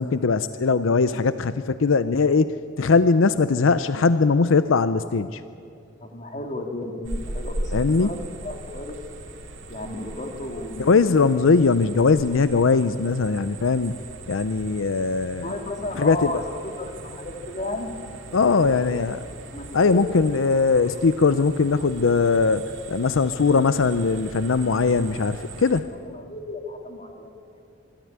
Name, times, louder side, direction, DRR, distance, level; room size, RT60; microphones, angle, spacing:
voice 1, 0.0-5.4 7.7-8.1 10.8-14.0 14.3-15.5 16.0-16.3 18.3-19.2 19.7-22.6 22.9-25.9, left 4 dB, 85° left, 13 dB, 0.6 m, -20 dB
voice 2, 6.0-7.7 8.0-9.0 9.7-10.9 11.2-11.4 15.4-16.4 16.8-17.9 18.4-18.9 19.5-20.0 26.0-27.6, left 2 dB, 35° left, 4 dB, 2.3 m, -34 dB
sound 1, 7.0-25.8, right 2 dB, 70° right, 2.6 m, -39 dB
26.0 x 13.0 x 9.6 m, 2.5 s
head